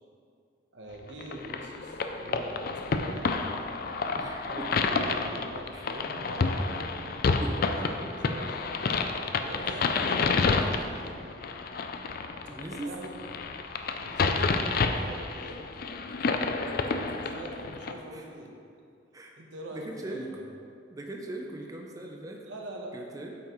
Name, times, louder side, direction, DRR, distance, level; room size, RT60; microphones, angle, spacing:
voice 1, 0.7-3.8 4.5-8.8 9.4-11.4 12.7-13.1 14.0-16.1 17.0-18.6 19.4-20.5 22.5-23.0, right 1 dB, 90° right, 0 dB, 1.0 m, -43 dB
sound 1, 1.2-17.9, left 4 dB, 55° left, 0.4 m, -29 dB
voice 2, 4.1-4.6 5.7-5.8 7.4-7.5 12.3-12.9 16.7-17.1 18.1-18.2 19.1-19.4 19.7-20.3 20.9-22.4 22.9-23.3, right 2 dB, 20° right, 1 dB, 0.5 m, -40 dB
8.5 x 5.8 x 3.1 m, 2.4 s
head